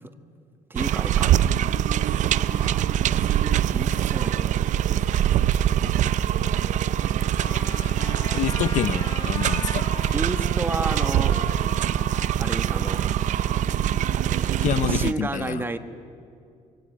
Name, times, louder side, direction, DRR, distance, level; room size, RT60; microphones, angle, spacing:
voice 1, 0.7-1.4 2.5-4.5 10.1-11.4 12.4-13.0 14.2-15.8, right 2 dB, 15° right, 9 dB, 1.5 m, -32 dB
sound 1, 0.8-15.1, right 11 dB, 65° right, 0.6 m, -23 dB
Trumpet, 7.4-14.5, left 5 dB, 30° left, 1.4 m, -41 dB
voice 2, 8.3-9.9 14.6-15.6, left 11 dB, 65° left, 16 dB, 0.8 m, -27 dB
26.0 x 23.5 x 8.9 m, 2.4 s
cardioid pair, 135°, 14 cm